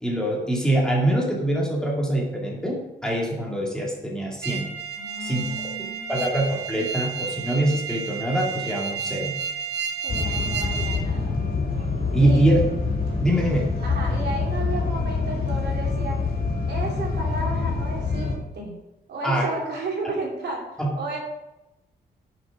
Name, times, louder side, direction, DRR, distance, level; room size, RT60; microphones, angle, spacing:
voice 1, 0.0-4.7 5.2-5.5 6.1-9.3 12.1-12.6 13.2-13.7 19.2-19.5 20.8-20.9, right 1 dB, 5° left, -2 dB, 2.2 m, -24 dB
sound 1, 4.4-11.0, right 6 dB, 90° right, 1.0 m, -31 dB
voice 2, 4.9-6.3 10.0-11.3 12.2-12.4 13.8-16.2 16.7-18.8 19.1-21.2, right 2 dB, 70° right, -1 dB, 2.8 m, -33 dB
sound 2, 10.1-18.3, left 4 dB, 55° left, 3.1 m, -26 dB
10.0 x 6.2 x 5.0 m, 0.94 s
cardioid pair, 120°, 18 cm